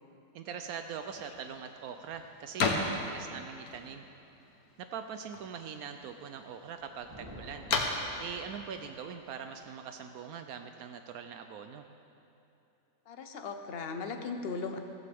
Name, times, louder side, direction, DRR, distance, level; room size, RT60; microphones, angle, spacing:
voice 1, 0.3-4.0 4.8-7.7 8.2-11.8, right 7 dB, 80° right, 7 dB, 1.1 m, -42 dB
sound 1, 0.9-10.1, left 3 dB, 80° left, 1.6 m, -38 dB
sound 2, 6.7-9.2, equal, 20° right, 2.6 m, -50 dB
voice 2, 13.1-14.8, left 4 dB, 50° left, 6 dB, 1.0 m, -37 dB
14.5 x 14.5 x 3.5 m, 2.9 s
omnidirectional pair, 1.5 m